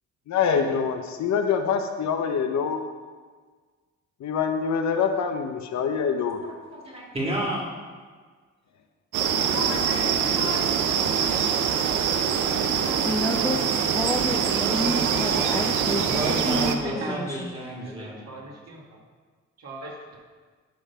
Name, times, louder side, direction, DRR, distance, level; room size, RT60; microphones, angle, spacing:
voice 1, 0.3-2.8 4.2-6.4, left 6 dB, 65° left, 5 dB, 0.8 m, -25 dB
voice 2, 6.4-7.7 16.1-18.2, right 1 dB, 20° right, -2 dB, 2.3 m, -31 dB
sound 1, 9.1-16.8, right 7 dB, 85° right, 0.7 m, -24 dB
voice 3, 9.5-10.8 12.2-13.4, left 1 dB, 85° left, -5 dB, 2.7 m, -37 dB
voice 4, 13.0-16.7 17.1-17.5, left 1 dB, 10° left, 0 dB, 0.6 m, -29 dB
voice 5, 14.9-15.5 16.0-16.1 16.8-17.4 17.8-19.0 19.6-20.0, right 2 dB, 55° right, -2 dB, 2.1 m, -38 dB
11.5 x 3.9 x 5.6 m, 1.5 s
cardioid pair, 90°, 30 cm